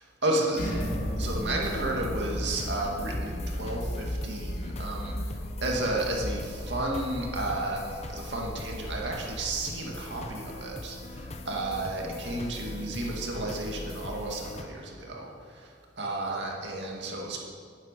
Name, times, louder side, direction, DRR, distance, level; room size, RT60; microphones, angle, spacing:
voice 1, 0.2-0.7 1.2-5.3 5.6-15.7 16.0-17.4, right 2 dB, 65° right, -1 dB, 2.2 m, -32 dB
sound 1, 0.5-12.4, equal, 75° left, 2.6 m, -36 dB
sound 2, 0.5-14.6, left 2 dB, 35° left, 0.9 m, -41 dB
10.5 x 9.3 x 6.8 m, 2.2 s
head